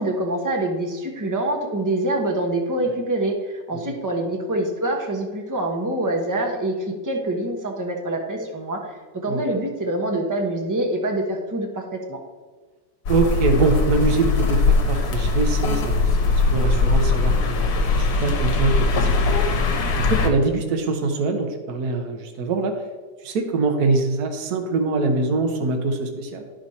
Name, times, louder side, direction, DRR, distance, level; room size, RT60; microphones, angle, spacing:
voice 1, 0.0-12.2, right 1 dB, 15° right, 2 dB, 0.8 m, -25 dB
sound 1, 13.1-20.3, left 3 dB, 65° left, 1.5 m, -20 dB
voice 2, 13.1-19.5 20.0-22.7 23.2-26.4, right 3 dB, 65° right, 4 dB, 1.4 m, -23 dB
10.5 x 6.2 x 4.2 m, 1.4 s
omnidirectional pair, 1.9 m